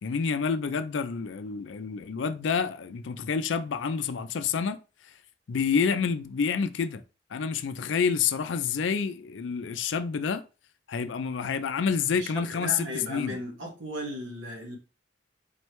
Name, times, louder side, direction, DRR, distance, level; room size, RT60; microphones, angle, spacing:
voice 1, 0.0-4.8 5.5-7.0 7.3-10.4 10.9-13.4, left 6 dB, 75° left, 0.4 m, -28 dB
voice 2, 12.2-14.8, equal, 80° right, 1.7 m, -36 dB
4.4 x 3.2 x 3.0 m
head